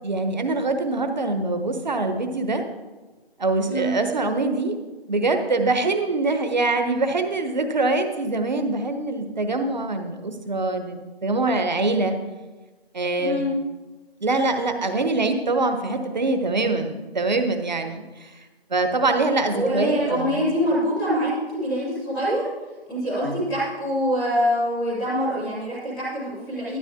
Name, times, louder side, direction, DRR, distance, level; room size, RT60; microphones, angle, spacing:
voice 1, 0.0-2.6 3.4-4.8 5.1-12.1 12.9-13.4 14.2-18.3 18.7-20.5 23.2-23.5, right 3 dB, 45° right, 7 dB, 1.0 m, -24 dB
voice 2, 3.7-4.0 13.2-13.5 19.5-22.4 22.9-26.8, equal, ahead, -13 dB, 0.8 m, -25 dB
12.5 x 8.9 x 3.6 m, 1.2 s
figure-of-eight pair, 160°, 31 cm